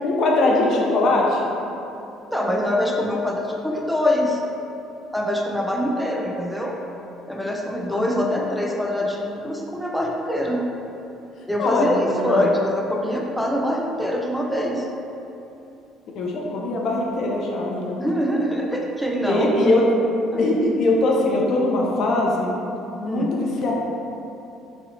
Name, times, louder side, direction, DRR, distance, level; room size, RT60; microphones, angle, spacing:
voice 1, 0.0-1.4 7.9-8.3 11.6-12.5 16.1-18.0 19.2-19.8 20.4-22.5 23.0-23.7, left 2 dB, 50° left, -2 dB, 0.5 m, -21 dB
voice 2, 2.3-4.4 5.1-6.8 7.3-10.7 11.5-14.9 18.0-19.7 20.3-20.4 23.0-23.3, equal, ahead, -1 dB, 0.4 m, -24 dB
3.9 x 2.8 x 2.6 m, 2.8 s
figure-of-eight pair, 55°, 0 cm